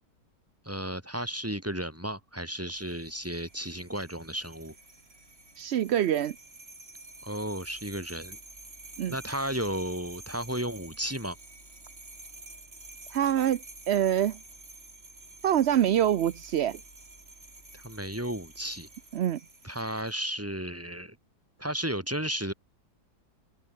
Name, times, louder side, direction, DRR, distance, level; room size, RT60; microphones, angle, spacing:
voice 1, 0.6-4.7 7.2-8.4 9.1-11.4 17.7-18.9 19.6-21.2 21.6-22.5, right 1 dB, 5° right, 4.3 m, -33 dB
sound 1, 2.7-20.2, right 2 dB, 35° right, 4.1 m, -49 dB
voice 2, 5.6-6.3 9.0-9.1 13.1-14.4 15.4-16.8 19.1-19.4, right 10 dB, 70° right, 0.6 m, -25 dB
open air
omnidirectional pair, 1.9 m